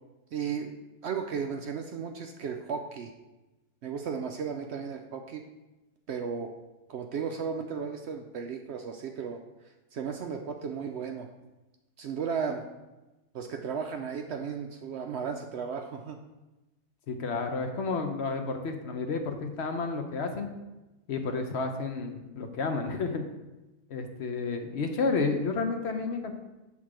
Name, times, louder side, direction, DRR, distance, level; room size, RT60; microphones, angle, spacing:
voice 1, 0.3-0.7 1.0-3.1 3.8-5.4 6.1-6.5 6.9-9.4 9.9-11.3 12.0-12.6 13.3-16.2, right 6 dB, 75° right, 4 dB, 0.6 m, -34 dB
voice 2, 17.1-20.5 21.1-23.2 23.9-26.3, left 4 dB, 60° left, 5 dB, 0.7 m, -31 dB
6.5 x 3.6 x 5.9 m, 1.0 s
omnidirectional pair, 1.6 m